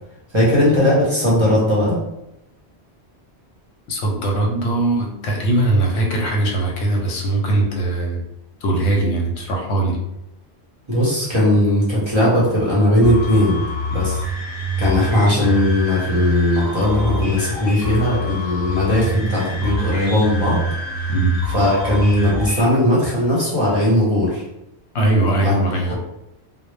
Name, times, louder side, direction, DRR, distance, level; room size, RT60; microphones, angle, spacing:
voice 1, 0.3-2.0 10.9-13.6 13.9-14.2 14.8-20.6 21.0-21.1 21.5-24.4 25.4-25.5, left 1 dB, 30° right, -7 dB, 0.7 m, -18 dB
voice 2, 3.9-8.2 8.6-10.0 21.1-21.4 24.9-26.0, right 2 dB, 90° left, 0 dB, 0.9 m, -20 dB
sound 1, 13.0-22.6, right 1 dB, 65° left, 0.9 m, -25 dB
2.0 x 2.0 x 3.1 m, 0.87 s
omnidirectional pair, 1.1 m